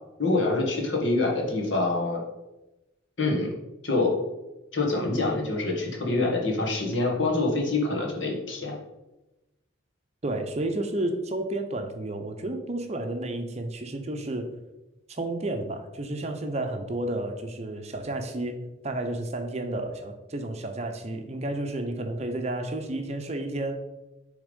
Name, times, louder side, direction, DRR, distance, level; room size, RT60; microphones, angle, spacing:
voice 1, 0.2-2.2 3.2-3.5 3.8-4.1 4.7-8.8, left 2 dB, 65° left, -1 dB, 1.6 m, -25 dB
voice 2, 10.2-14.5 15.1-18.6 18.8-23.7, right 1 dB, 35° right, 5 dB, 0.7 m, -31 dB
6.8 x 3.6 x 5.2 m, 1.0 s
head